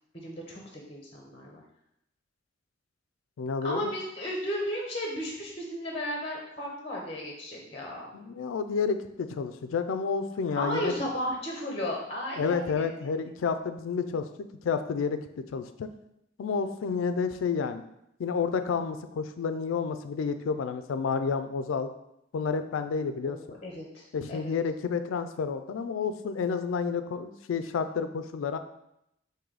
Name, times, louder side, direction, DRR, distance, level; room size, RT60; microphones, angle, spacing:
voice 1, 0.1-1.6 3.6-8.1 10.6-13.1 23.2-24.5, equal, 30° left, -1 dB, 0.6 m, -35 dB
voice 2, 3.4-3.9 8.1-10.9 12.4-15.9 16.4-17.8 18.2-21.9 22.3-23.6 24.1-28.6, left 5 dB, 90° left, 9 dB, 0.3 m, -30 dB
4.7 x 2.6 x 3.8 m, 0.80 s
head